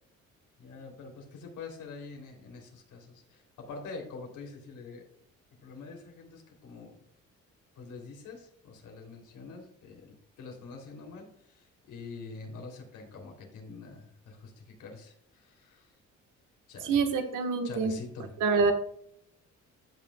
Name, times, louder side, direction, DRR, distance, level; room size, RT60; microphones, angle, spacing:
voice 1, 0.6-5.0 5.6-7.0 7.8-15.9 16.7-17.0 17.6-18.3, left 4 dB, 80° left, 1 dB, 3.1 m, -45 dB
voice 2, 16.8-17.9 18.4-18.7, right 4 dB, 80° right, 5 dB, 1.5 m, -26 dB
15.5 x 6.1 x 2.3 m, 0.69 s
cardioid pair, 90°, 30 cm